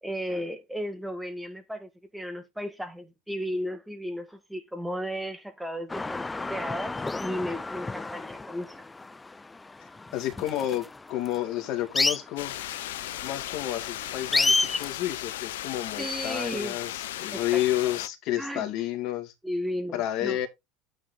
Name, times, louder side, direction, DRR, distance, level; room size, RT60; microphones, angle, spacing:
voice 1, 0.0-8.8 16.0-16.8 17.3-17.7 18.4-18.7 19.4-20.4, equal, 5° right, 1.8 m, -34 dB
sound 1, 5.9-14.9, left 3 dB, 15° left, 0.4 m, -31 dB
voice 2, 10.1-12.6 13.2-19.3 19.9-20.5, left 13 dB, 60° left, 2.1 m, -30 dB
sound 2, 12.4-18.1, left 13 dB, 75° left, 0.7 m, -36 dB
9.1 x 4.6 x 3.9 m
hypercardioid pair, 75°, 0 cm